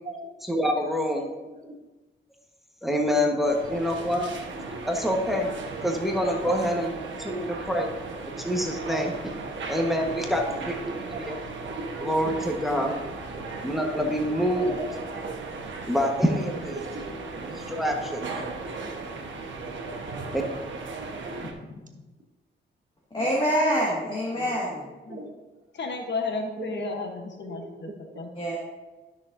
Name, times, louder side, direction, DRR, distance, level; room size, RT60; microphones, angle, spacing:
voice 1, 0.4-1.3 2.8-4.3 4.9-5.5 5.8-6.9 7.2-7.9 8.4-9.1 9.7-11.4 12.0-12.9 13.6-14.7 15.9-16.8 17.7-18.3 20.3-20.4, equal, ahead, 1 dB, 1.2 m, -26 dB
voice 2, 1.4-1.8 3.4-4.0 4.7-4.8 6.4-6.9 7.3-7.4 7.7-7.8 8.2-8.3 8.9-9.0 11.1-11.2 13.3-13.4 14.6-15.2 16.7-17.0 18.6-18.7 20.9-21.3 23.2-23.3 24.3-24.5 25.1-25.3 26.6-27.0 27.4-28.2, right 3 dB, 40° right, 3 dB, 1.3 m, -39 dB
sound 1, 3.4-21.5, right 3 dB, 70° right, 1.2 m, -36 dB
voice 3, 23.1-24.8 28.4-28.6, equal, 25° left, -4 dB, 1.8 m, -25 dB
voice 4, 25.7-27.9 28.2-28.3, left 3 dB, 60° left, 3 dB, 1.0 m, -32 dB
12.5 x 6.3 x 2.6 m, 1.2 s
cardioid pair, 90°, 20 cm